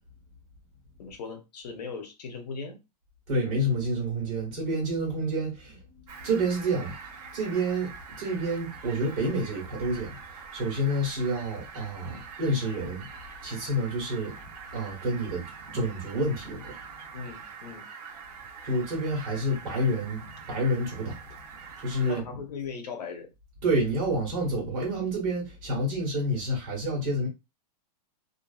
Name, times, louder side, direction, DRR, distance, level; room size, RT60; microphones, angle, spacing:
voice 1, 1.0-2.8 17.1-17.8 22.0-23.3, left 5 dB, 70° left, 0.8 m, -38 dB
voice 2, 3.3-5.8 6.2-6.9 7.3-13.1 13.4-14.4 14.7-15.4 15.7-16.8 18.6-21.2 21.8-22.4 23.6-27.3, right 1 dB, 30° right, 1.2 m, -29 dB
Fowl, 6.1-22.2, right 6 dB, 65° right, 0.8 m, -45 dB
2.5 x 2.4 x 2.3 m
supercardioid pair, 175°, 21 cm